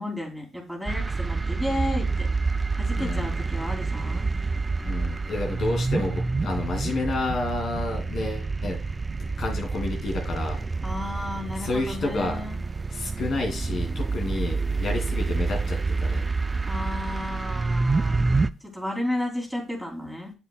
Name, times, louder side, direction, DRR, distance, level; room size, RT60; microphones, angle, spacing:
voice 1, 0.0-2.3 2.7-4.3 10.8-12.6 16.6-18.3 18.6-20.3, left 1 dB, ahead, -1 dB, 2.9 m, -33 dB
sound 1, 0.9-18.5, right 3 dB, 25° right, 0.3 m, -28 dB
voice 2, 2.9-3.4 4.8-8.8 9.2-10.6 11.6-12.4 12.9-16.2, left 2 dB, 60° left, 2 dB, 2.4 m, -30 dB
8.2 x 7.8 x 2.3 m, 0.31 s
cardioid pair, 90°, 0 cm